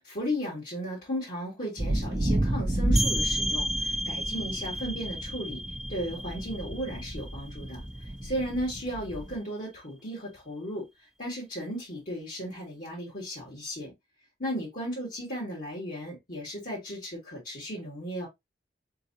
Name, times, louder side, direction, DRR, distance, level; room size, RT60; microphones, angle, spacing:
voice 1, 0.0-5.6 5.9-7.8 8.2-10.9 11.2-13.9 14.4-18.3, equal, 50° left, 2.2 m, -35 dB
sound 1, 1.8-9.4, right 1 dB, 25° right, 0.8 m, -31 dB
sound 2, 3.0-8.4, equal, ahead, 0.4 m, -33 dB
4.4 x 3.8 x 2.7 m
head